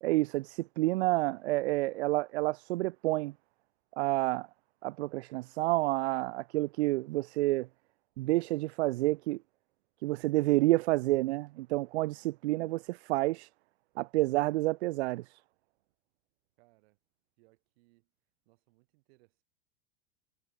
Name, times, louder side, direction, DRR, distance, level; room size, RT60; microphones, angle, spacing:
voice 1, 0.0-3.3 4.0-4.5 4.8-7.7 8.2-9.4 10.0-13.5 14.0-15.4, right 19 dB, 80° right, 0.5 m, -29 dB
voice 2, 11.9-12.3 16.6-17.0 17.4-18.1 18.4-19.4, right 24 dB, 65° right, 7.9 m, -68 dB
supercardioid pair, 120°, 32 cm